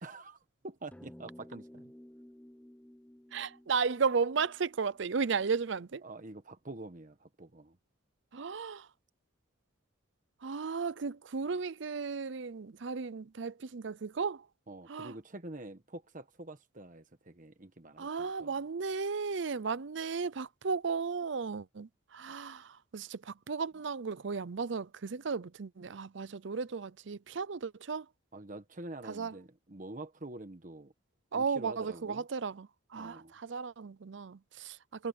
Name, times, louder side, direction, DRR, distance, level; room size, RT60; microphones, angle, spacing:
voice 1, 0.0-1.9 6.0-7.8 14.7-18.5 28.3-30.9 31.3-32.2 32.9-33.3, right 2 dB, 40° right, 1.3 m, -46 dB
sound 1, 0.9-5.6, equal, 5° left, 1.0 m, -55 dB
voice 2, 3.3-6.0 8.3-8.9 10.4-14.5 14.9-15.2 18.0-28.1 29.1-29.3 31.3-35.1, right 5 dB, 60° right, 0.6 m, -35 dB
head